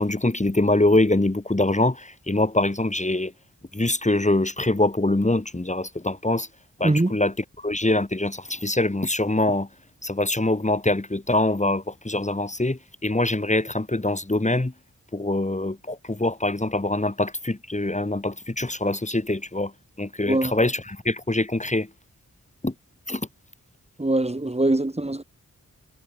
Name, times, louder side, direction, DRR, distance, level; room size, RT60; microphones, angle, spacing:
voice 1, 0.0-3.3 3.7-6.5 6.8-9.7 10.0-14.7 15.1-19.7 20.0-21.9 22.6-22.7 23.1-23.3, left 2 dB, 20° left, 2.3 m, -24 dB
voice 2, 6.8-7.2 20.3-20.6 24.0-25.2, right 2 dB, 20° right, 1.8 m, -22 dB
cardioid pair, 55°, 33 cm